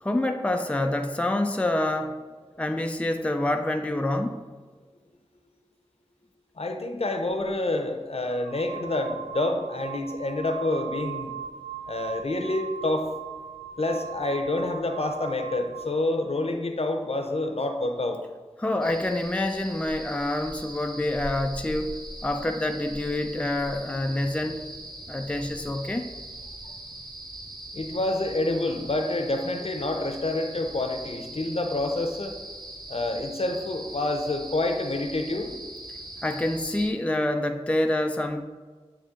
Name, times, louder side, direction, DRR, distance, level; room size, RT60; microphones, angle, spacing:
voice 1, 0.0-2.2 2.6-4.4 18.6-22.0 22.2-24.6 25.1-26.1 36.2-38.4, left 1 dB, 10° left, 5 dB, 0.4 m, -27 dB
voice 2, 6.6-11.3 11.9-13.1 13.8-18.2 26.6-26.7 27.7-32.3 32.9-35.5, left 2 dB, 60° left, 4 dB, 0.7 m, -28 dB
sound 1, 7.3-7.5 8.3-16.0, right 8 dB, 60° right, 0.4 m, -39 dB
sound 2, 18.8-36.9, right 1 dB, 35° right, 0.7 m, -41 dB
8.0 x 3.3 x 3.7 m, 1.4 s
wide cardioid pair, 45°, 12 cm